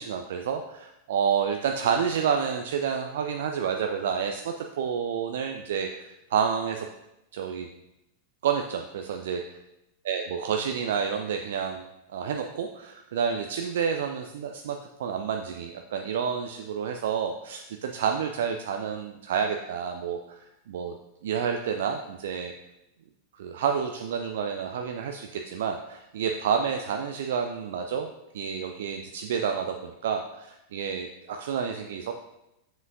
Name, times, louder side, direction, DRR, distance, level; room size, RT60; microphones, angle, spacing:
voice 1, 0.0-6.9 7.3-7.7 8.4-9.4 10.1-11.8 12.1-21.0 21.2-22.5 23.4-28.1 28.3-32.1, right 7 dB, 60° right, 4 dB, 0.4 m, -29 dB
7.2 x 5.7 x 2.6 m, 0.88 s
figure-of-eight pair, 90°, 0 cm